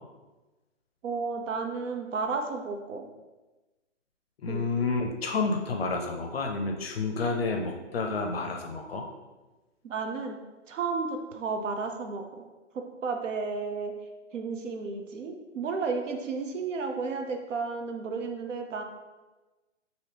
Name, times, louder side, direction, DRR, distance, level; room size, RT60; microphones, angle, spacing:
voice 1, 1.0-3.1 4.5-4.7 9.8-10.4 10.7-12.4 12.7-13.9 14.3-18.8, right 4 dB, 80° right, 4 dB, 0.6 m, -32 dB
voice 2, 4.4-9.0, left 3 dB, 55° left, 3 dB, 0.5 m, -30 dB
2.9 x 2.7 x 3.2 m, 1.2 s
hypercardioid pair, 155°, 37 cm